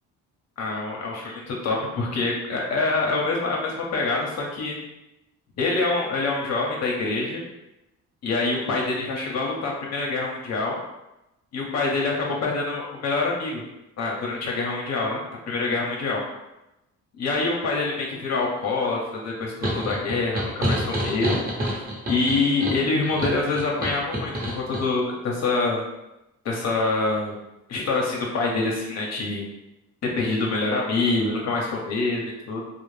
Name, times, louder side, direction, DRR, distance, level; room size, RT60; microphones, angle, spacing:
voice 1, 0.6-4.8 5.6-7.4 8.2-10.8 11.5-13.6 14.0-15.2 15.5-16.2 17.2-21.4 22.1-25.8 26.4-27.3 27.7-29.4 30.0-32.6, left 3 dB, 60° left, -2 dB, 0.6 m, -25 dB
sound 1, 19.6-24.9, equal, 30° right, 0.8 m, -28 dB
2.4 x 2.1 x 3.1 m, 0.93 s
cardioid pair, 90°, 30 cm